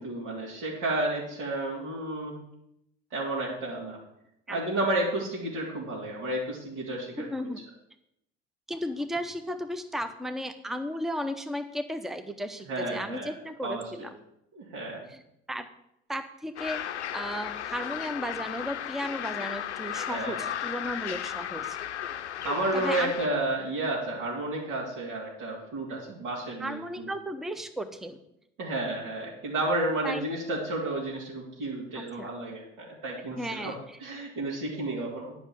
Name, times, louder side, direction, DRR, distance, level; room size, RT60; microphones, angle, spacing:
voice 1, 0.0-2.3 3.1-4.0 4.5-7.5 12.7-13.3 13.6-14.1 14.5-15.0 20.1-20.4 22.4-27.1 28.6-33.7 34.0-35.3, right 2 dB, 60° right, -6 dB, 3.1 m, -31 dB
voice 2, 7.2-7.6 8.7-14.1 15.1-15.2 15.5-15.7 16.1-21.8 22.7-23.1 26.6-28.2 30.0-30.2 31.9-32.3 33.3-34.0, equal, ahead, 9 dB, 0.9 m, -35 dB
sound 1, 16.6-23.3, left 10 dB, 80° left, 0.6 m, -35 dB
10.0 x 6.0 x 7.6 m, 0.79 s
figure-of-eight pair, 65°, 33 cm